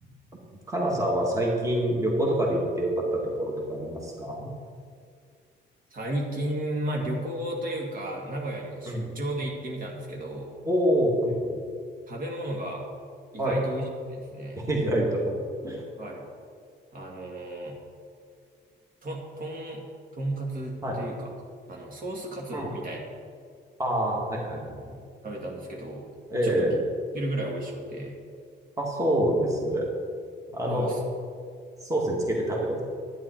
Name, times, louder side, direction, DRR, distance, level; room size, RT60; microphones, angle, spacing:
voice 1, 0.7-4.5 8.9-9.2 10.6-11.6 13.4-13.6 14.6-15.4 15.6-15.8 20.8-21.0 22.5-22.7 23.8-24.9 26.3-26.8 28.8-29.9 30.5-30.9 31.8-32.8, right 1 dB, 15° right, -2 dB, 2.0 m, -26 dB
voice 2, 5.9-10.5 12.1-12.9 13.3-14.6 16.0-16.3 16.9-17.8 19.0-19.9 20.1-21.3 21.7-23.0 25.2-26.1 26.4-26.8 27.1-28.2 30.6-31.0, right 1 dB, 50° right, -1 dB, 2.0 m, -34 dB
11.0 x 9.6 x 4.5 m, 2.2 s
cardioid pair, 130°, 19 cm